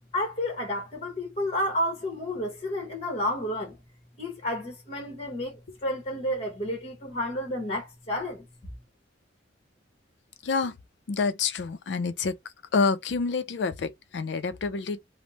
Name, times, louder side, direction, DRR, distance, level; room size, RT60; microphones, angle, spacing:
voice 1, 0.1-3.8 4.2-5.5 5.8-8.5, left 1 dB, 35° left, 1.1 m, -31 dB
voice 2, 10.4-10.8 11.1-12.4 12.7-15.0, left 4 dB, 70° left, 0.4 m, -27 dB
3.4 x 2.0 x 2.8 m
head